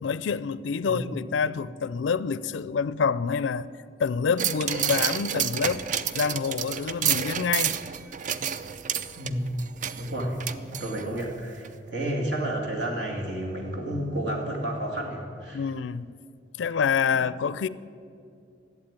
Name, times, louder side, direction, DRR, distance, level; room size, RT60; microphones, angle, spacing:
voice 1, 0.0-3.7 4.0-5.9 6.1-7.8 15.5-16.1 16.6-17.7, left 6 dB, 80° left, 0.4 m, -27 dB
sound 1, 4.4-11.3 11.6-11.7, right 8 dB, 40° right, 0.4 m, -29 dB
voice 2, 9.2-9.5 9.9-15.6, right 1 dB, 65° right, 2.3 m, -31 dB
11.5 x 8.3 x 8.9 m
head